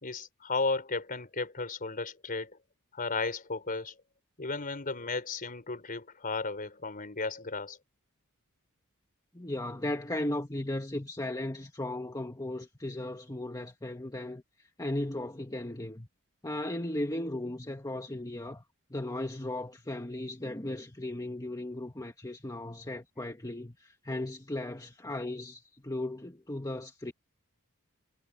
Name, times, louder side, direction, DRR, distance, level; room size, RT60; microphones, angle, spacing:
voice 1, 0.0-2.6 2.9-3.9 4.4-7.8, left 3 dB, 40° left, 4.4 m, -34 dB
voice 2, 9.3-16.1 16.4-18.6 18.9-27.1, left 1 dB, 15° left, 1.7 m, -36 dB
head